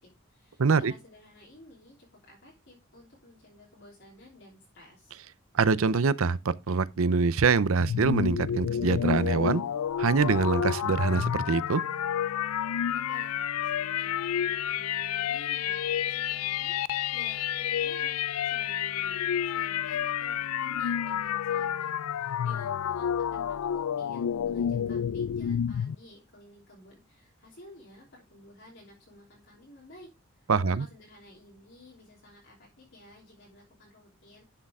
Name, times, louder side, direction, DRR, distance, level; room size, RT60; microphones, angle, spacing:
voice 1, 0.0-5.2 12.9-14.1 14.4-34.4, left 1 dB, 55° left, 3.3 m, -53 dB
voice 2, 0.6-0.9 5.5-9.6 10.0-11.8 30.5-30.9, right 4 dB, 75° right, 0.6 m, -24 dB
sound 1, 7.8-25.9, left 9 dB, 90° left, 0.4 m, -30 dB
11.5 x 6.6 x 3.6 m
head